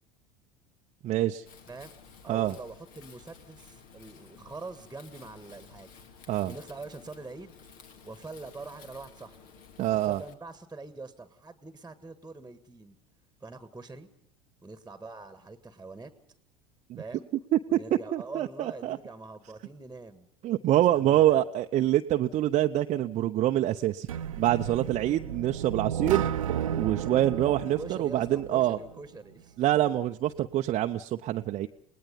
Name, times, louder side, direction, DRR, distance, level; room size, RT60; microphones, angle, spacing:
voice 1, 1.0-1.4 2.3-2.5 6.3-6.5 9.8-10.2 16.9-17.0 17.5-17.8 18.1-19.0 20.4-24.1 24.4-26.2 26.7-28.8 29.6-31.7, right 13 dB, 40° right, 4 dB, 0.8 m, -25 dB
Wind, 1.5-10.3, left 6 dB, 55° left, 2.2 m, -53 dB
voice 2, 2.2-5.9 6.4-7.5 8.0-9.4 9.9-13.0 13.4-14.1 14.6-16.1 17.0-17.3 17.7-20.3 20.7-21.5 27.3-29.6, right 3 dB, 10° right, 11 dB, 1.7 m, -44 dB
sound 1, 24.1-29.0, right 9 dB, 75° right, 0.9 m, -33 dB
29.5 x 19.0 x 5.4 m, 0.65 s
figure-of-eight pair, 75°, 17 cm